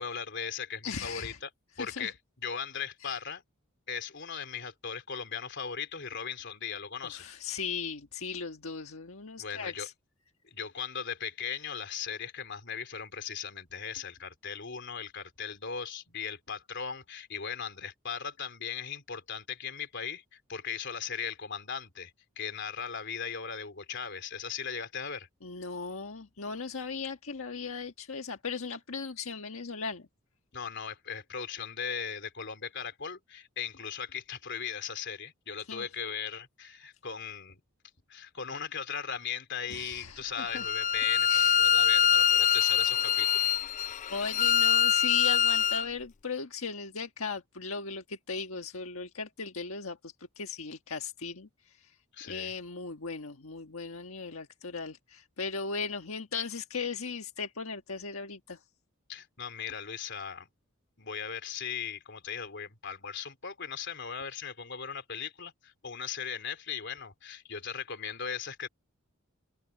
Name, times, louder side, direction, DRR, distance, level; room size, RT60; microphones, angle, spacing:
voice 1, 0.0-1.5 1.8-3.4 3.9-7.2 9.4-9.9 10.4-25.3 30.5-37.6 38.1-43.5 52.1-52.5 59.1-60.5 61.0-68.7, left 7 dB, 60° left, 3.5 m, -38 dB
voice 2, 0.8-1.4 1.8-2.1 3.0-3.1 7.0-9.9 25.4-30.1 35.7-35.9 39.7-40.7 41.3-41.6 44.1-51.9 52.2-58.6, left 5 dB, 85° left, 1.5 m, -37 dB
Bowed string instrument, 40.5-45.9, left 8 dB, 35° left, 0.4 m, -24 dB
open air
head